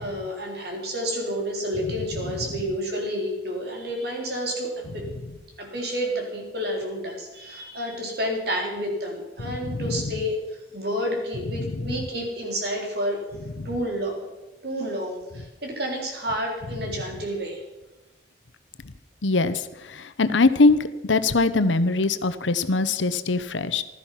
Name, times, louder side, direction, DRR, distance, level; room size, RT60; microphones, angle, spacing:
voice 1, 0.0-5.0 5.6-10.4 10.7-13.2 13.6-14.2 14.6-17.6, equal, 60° right, 1 dB, 3.8 m, -30 dB
voice 2, 9.4-10.1 11.6-12.0 13.6-13.7 19.2-23.8, left 3 dB, 85° left, 12 dB, 0.9 m, -23 dB
15.5 x 12.5 x 5.8 m, 1.0 s
head